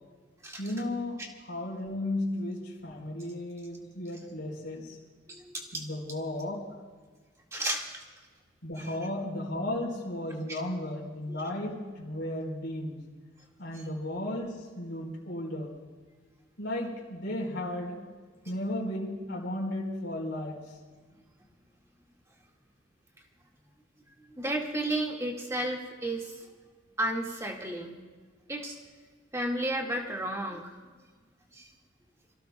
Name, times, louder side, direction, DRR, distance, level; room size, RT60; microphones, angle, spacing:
voice 1, 0.6-5.0 5.7-6.8 8.6-13.0 13.6-15.8 16.6-18.0 18.4-20.8, left 1 dB, 70° left, -3 dB, 4.3 m, -34 dB
voice 2, 5.3-5.8 7.5-8.0 8.8-8.9 10.5-10.6 11.3-11.5 13.7-13.8 24.3-26.5 27.0-28.0 28.5-28.8 29.3-30.7 31.5-31.7, right 1 dB, 15° right, 0 dB, 2.0 m, -33 dB
28.0 x 16.5 x 2.3 m, 1.5 s
head